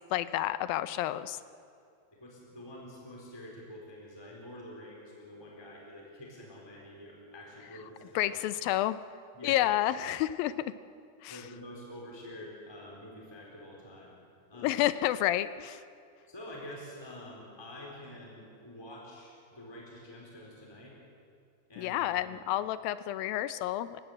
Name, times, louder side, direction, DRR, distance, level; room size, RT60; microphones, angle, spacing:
voice 1, 0.1-1.4 8.2-9.0 9.4-10.7 11.2-11.4 14.6-15.8 21.8-24.0, left 14 dB, 75° left, 14 dB, 2.3 m, -30 dB
voice 2, 2.1-8.3 9.3-9.6 11.3-14.1 14.5-14.8 16.3-20.9 21.7-22.4, left 1 dB, 5° left, -2 dB, 3.9 m, -47 dB
29.0 x 17.0 x 8.1 m, 2.4 s
omnidirectional pair, 4.6 m